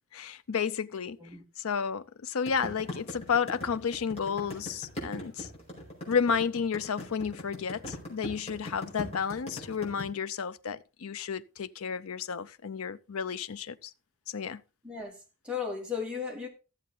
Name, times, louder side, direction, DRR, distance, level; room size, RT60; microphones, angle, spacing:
voice 1, 0.1-1.2 1.6-5.5 6.1-13.9 14.3-14.6, left 6 dB, 85° left, 0.6 m, -32 dB
sound 1, 2.5-10.0, left 1 dB, 30° left, 4.6 m, -39 dB
voice 2, 14.8-15.2 15.4-16.5, left 6 dB, 5° right, 2.3 m, -35 dB
14.0 x 7.5 x 3.9 m
head